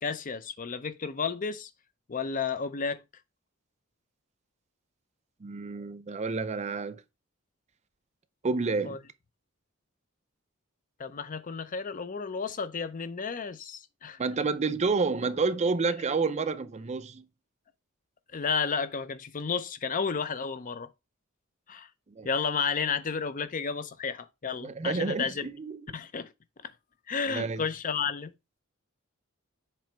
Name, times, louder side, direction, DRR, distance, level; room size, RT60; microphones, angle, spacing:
voice 1, 0.0-1.7 2.1-3.0 8.9-9.0 11.0-14.2 18.3-20.9 21.7-21.9 22.2-25.5 25.9-26.3 26.6-26.7 27.1-28.3, left 5 dB, 40° left, 0.6 m, -32 dB
voice 2, 5.4-7.0 8.4-9.0 14.2-17.2 22.2-22.3 24.6-25.8 27.3-27.6, right 4 dB, 35° right, 0.5 m, -29 dB
7.5 x 3.1 x 4.5 m
head